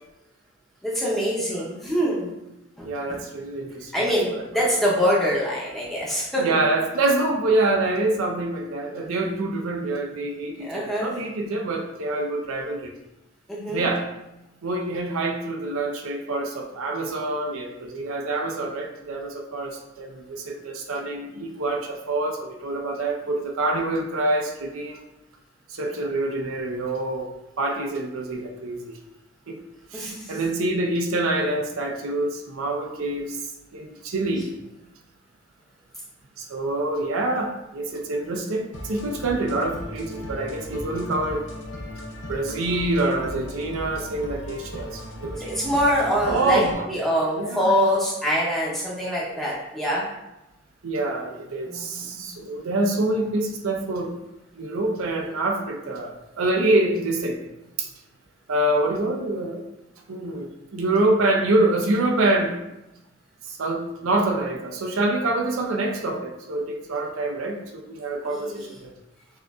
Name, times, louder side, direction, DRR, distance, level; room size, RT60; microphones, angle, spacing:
voice 1, 0.8-2.3 2.8-3.2 3.9-6.5 10.6-11.1 13.5-13.9 29.9-30.4 45.4-46.6 46.9-50.0 51.7-52.3 68.3-68.7, equal, ahead, -6 dB, 0.7 m, -24 dB
voice 2, 2.8-4.5 6.4-12.9 13.7-14.1 14.6-25.0 25.7-27.3 27.6-28.9 29.5-29.6 29.9-34.5 36.4-41.5 42.3-45.5 46.3-46.9 47.4-47.8 50.8-54.2 54.5-57.4 57.8-57.9 58.5-59.6 60.1-62.6 63.5-68.9, right 2 dB, 80° right, 2 dB, 0.6 m, -26 dB
sound 1, 38.7-46.7, left 1 dB, 55° left, 0.6 m, -37 dB
6.2 x 2.5 x 2.3 m, 0.95 s
head